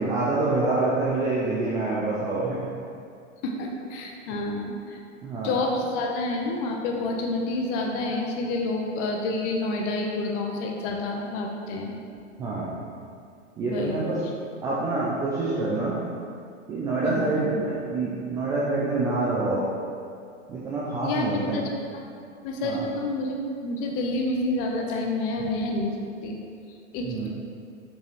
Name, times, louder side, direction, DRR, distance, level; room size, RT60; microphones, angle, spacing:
voice 1, 0.0-2.6 5.2-5.6 12.4-12.8 13.6-14.2 14.6-16.0 16.7-19.7 20.5-21.6 22.6-22.8 27.0-27.3, right 2 dB, 10° right, -7 dB, 0.3 m, -26 dB
voice 2, 3.4-5.0 5.4-11.9 13.6-14.1 17.0-17.3 21.0-21.6 21.9-22.0 22.4-23.4 23.6-25.9 26.2-26.4 26.9-27.3, left 2 dB, 35° left, 1 dB, 0.9 m, -28 dB
6.6 x 5.3 x 3.1 m, 2.4 s
hypercardioid pair, 110°, 38 cm